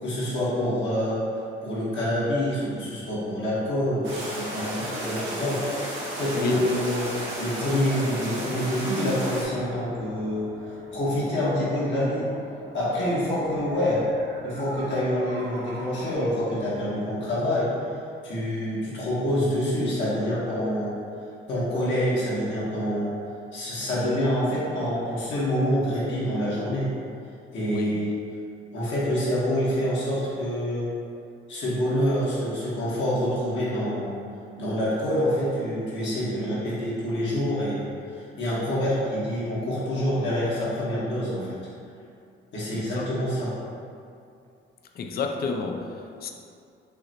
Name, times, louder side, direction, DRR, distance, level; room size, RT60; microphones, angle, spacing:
voice 1, 0.0-1.2 1.6-7.1 7.4-12.3 12.7-14.0 14.4-17.7 18.2-20.9 21.5-23.2 23.5-26.9 27.5-28.1 28.7-30.9 31.5-34.2 34.6-41.6 42.5-43.6, equal, 70° left, -9 dB, 1.3 m, -26 dB
sound 1, 4.0-9.4, right 1 dB, 80° right, 1.2 m, -33 dB
sound 2, 7.2-16.1, right 2 dB, 60° right, 0.6 m, -45 dB
voice 2, 27.7-28.0 42.7-43.1 45.0-46.3, left 4 dB, 50° left, 3 dB, 0.4 m, -31 dB
5.6 x 2.0 x 2.9 m, 2.5 s
cardioid pair, 90°, 20 cm